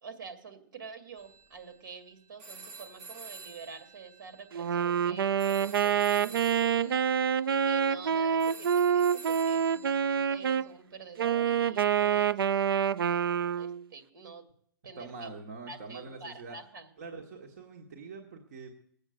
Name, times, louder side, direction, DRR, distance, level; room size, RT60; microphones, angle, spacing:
voice 1, 0.0-7.0 7.5-12.4 13.6-14.5 14.8-15.3 15.7-16.9, right 5 dB, 65° right, 9 dB, 2.3 m, -47 dB
sound 1, 1.2-10.7, right 4 dB, 25° right, 0.8 m, -50 dB
Wind instrument woodwind instrument, 4.5-10.7 11.2-13.8, right 8 dB, 85° right, 0.5 m, -27 dB
voice 2, 15.0-16.6 17.0-18.7, right 4 dB, 45° right, 2 dB, 1.5 m, -44 dB
19.0 x 8.1 x 7.7 m, 0.67 s
hypercardioid pair, 170°, 12 cm